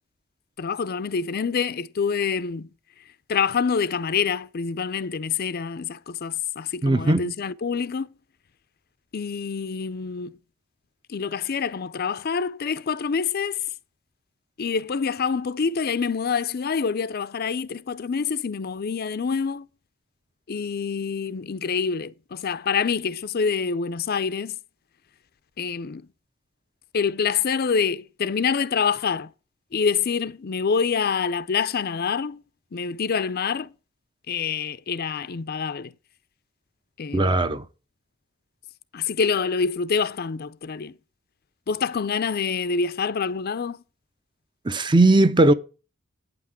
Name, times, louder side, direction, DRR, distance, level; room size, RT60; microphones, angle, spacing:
voice 1, 0.6-2.7 3.3-8.1 9.1-10.4 11.1-13.6 14.6-19.7 20.5-24.6 25.6-26.0 26.9-29.3 29.7-32.4 32.7-33.7 34.3-35.9 37.0-37.6 38.9-40.9 41.7-43.8, left 6 dB, 45° left, 0.5 m, -26 dB
voice 2, 6.8-7.2 37.1-37.6 44.7-45.5, right 2 dB, 20° right, 0.5 m, -18 dB
9.0 x 5.8 x 7.6 m
head